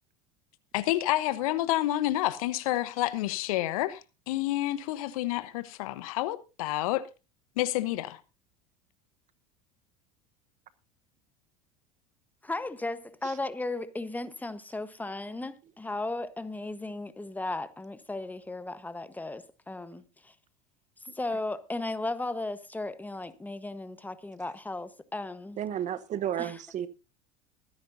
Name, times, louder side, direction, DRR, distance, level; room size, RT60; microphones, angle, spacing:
voice 1, 0.7-7.1 7.6-8.2, left 15 dB, 65° left, 1.0 m, -29 dB
voice 2, 12.4-20.3 21.1-25.6 26.4-26.6, left 2 dB, 10° left, 1.2 m, -36 dB
voice 3, 25.6-26.9, right 10 dB, 40° right, 1.0 m, -32 dB
23.5 x 9.8 x 2.7 m
hypercardioid pair, 75°, 19 cm